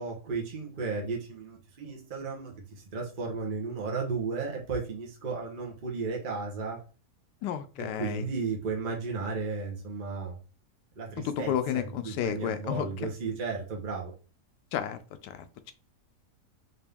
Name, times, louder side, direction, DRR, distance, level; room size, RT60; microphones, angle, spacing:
voice 1, 0.0-6.8 7.8-10.4 11.0-14.1, right 4 dB, 40° right, -1 dB, 0.9 m, -34 dB
voice 2, 7.4-8.3 11.2-13.1 14.7-15.7, left 9 dB, 85° left, 10 dB, 1.2 m, -32 dB
3.9 x 2.6 x 3.4 m, 0.37 s
omnidirectional pair, 1.8 m